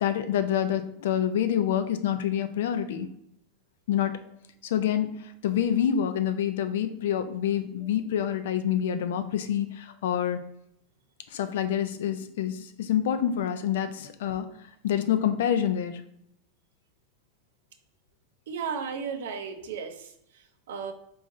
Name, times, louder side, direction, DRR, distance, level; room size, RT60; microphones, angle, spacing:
voice 1, 0.0-3.1 3.9-4.2 4.6-10.4 11.3-14.5 14.8-16.0, left 9 dB, 80° left, 10 dB, 0.4 m, -27 dB
voice 2, 18.5-20.1 20.7-20.9, right 6 dB, 85° right, 7 dB, 0.5 m, -34 dB
3.7 x 3.0 x 2.5 m, 0.75 s
supercardioid pair, 130°, 0 cm